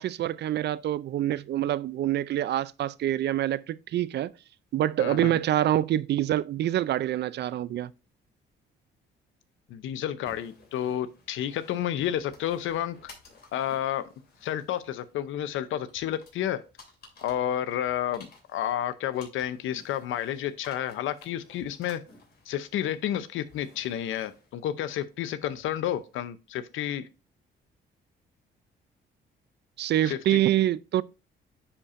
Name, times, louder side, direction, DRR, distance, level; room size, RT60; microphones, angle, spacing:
voice 1, 0.0-4.3 4.7-7.9 29.8-31.0, right 12 dB, 60° right, 0.4 m, -26 dB
voice 2, 5.0-5.4 9.7-13.0 13.5-14.0 14.4-16.6 17.2-22.0 22.5-27.1 30.0-30.4, left 11 dB, 80° left, 0.7 m, -31 dB
sound 1, 10.3-26.1, left 3 dB, 50° left, 3.0 m, -56 dB
9.8 x 4.3 x 2.5 m
cardioid pair, 90°, 20 cm